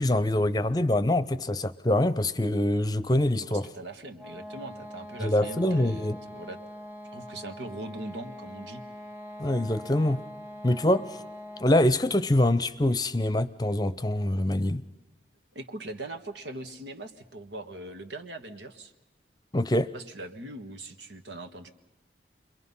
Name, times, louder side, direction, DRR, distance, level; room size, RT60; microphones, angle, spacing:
voice 1, 0.0-3.7 5.2-6.2 9.4-10.2 10.6-11.2 11.6-14.8 19.5-19.9, left 1 dB, 20° left, 0.7 m, -24 dB
voice 2, 3.5-6.6 7.1-8.8 15.5-18.9 19.9-21.7, right 2 dB, 85° right, 1.7 m, -41 dB
sound 1, 4.1-11.8, left 1 dB, 10° right, 1.2 m, -43 dB
29.5 x 22.5 x 5.6 m
head